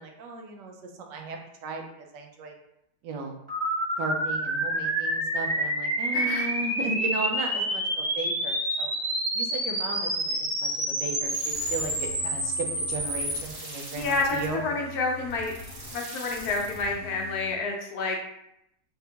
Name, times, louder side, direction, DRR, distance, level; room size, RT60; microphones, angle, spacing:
voice 1, 0.0-2.5 3.0-3.4 4.0-8.9 9.3-14.6, right 3 dB, 90° right, 2 dB, 1.3 m, -35 dB
sound 1, 3.5-13.4, right 1 dB, 20° right, 1.0 m, -28 dB
voice 2, 6.1-6.5 13.9-15.5 15.9-18.3, left 3 dB, 70° left, 0 dB, 1.0 m, -29 dB
sound 2, 11.2-17.6, equal, 40° right, 0.7 m, -42 dB
3.4 x 2.8 x 2.8 m, 0.80 s
omnidirectional pair, 1.8 m